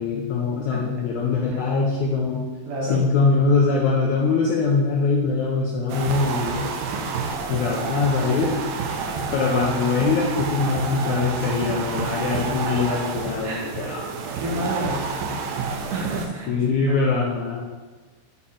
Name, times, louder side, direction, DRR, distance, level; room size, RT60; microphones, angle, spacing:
voice 1, 0.0-2.5 2.9-6.7 7.5-8.6 9.3-14.0 14.5-14.7 16.5-17.6, left 4 dB, 75° left, -3 dB, 1.7 m, -22 dB
voice 2, 2.6-3.0 12.9-13.0 13.4-14.1 14.4-15.1 15.9-17.0, right 1 dB, 65° right, -3 dB, 2.5 m, -30 dB
sound 1, 5.9-16.3, right 5 dB, 90° right, 2.5 m, -29 dB
9.6 x 4.1 x 3.8 m, 1.3 s
omnidirectional pair, 4.1 m